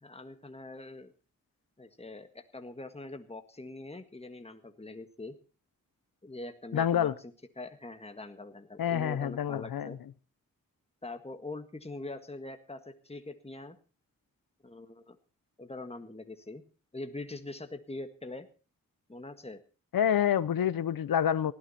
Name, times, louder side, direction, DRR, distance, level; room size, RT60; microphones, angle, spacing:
voice 1, 0.0-1.1 1.8-5.4 6.2-7.1 7.6-10.0 11.0-13.8 14.6-15.2 15.6-16.6 16.9-18.5 19.1-19.6, left 2 dB, 20° left, 1.7 m, -43 dB
voice 2, 6.7-7.1 8.8-10.0 19.9-21.5, left 9 dB, 90° left, 0.8 m, -27 dB
19.0 x 13.5 x 4.3 m
cardioid pair, 55°, 34 cm